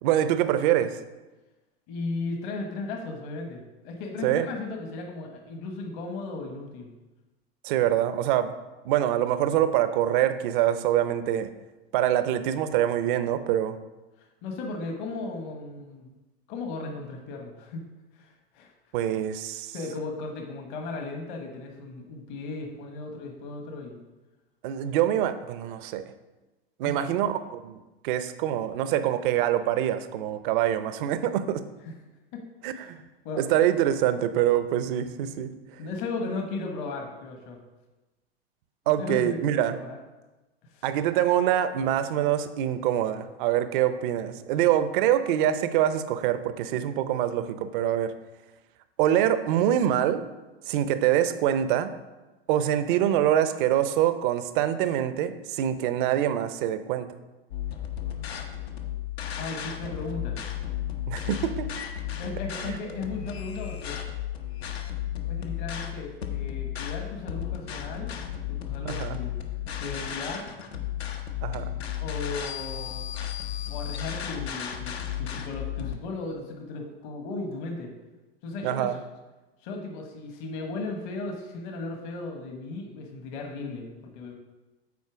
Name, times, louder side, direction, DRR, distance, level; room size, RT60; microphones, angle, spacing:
voice 1, 0.0-1.0 4.2-4.5 7.6-8.5 8.8-11.5 11.9-13.8 18.9-19.7 24.6-26.0 26.8-27.8 28.0-31.6 32.6-33.0 33.4-35.5 38.9-39.7 40.8-48.1 49.0-50.2 50.7-51.9 52.5-57.1 61.1-61.7 62.6-62.8 68.8-69.2 71.4-71.7 78.6-79.0, right 11 dB, 55° right, 11 dB, 0.7 m, -25 dB
voice 2, 1.9-6.9 14.2-16.1 16.5-17.8 18.1-18.7 19.7-24.0 26.8-27.0 31.9-32.0 32.3-32.4 32.7-33.0 33.2-33.4 35.8-37.6 39.0-40.0 40.6-40.8 59.4-60.4 62.2-64.0 65.3-68.1 68.5-69.4 69.8-70.5 72.0-73.0 73.7-77.9 78.4-79.0 79.6-84.3, left 3 dB, 50° left, 3 dB, 1.3 m, -36 dB
sound 1, 57.5-76.0, left 11 dB, 80° left, 1.0 m, -34 dB
8.5 x 4.3 x 4.9 m, 1.1 s
hypercardioid pair, 105°, 31 cm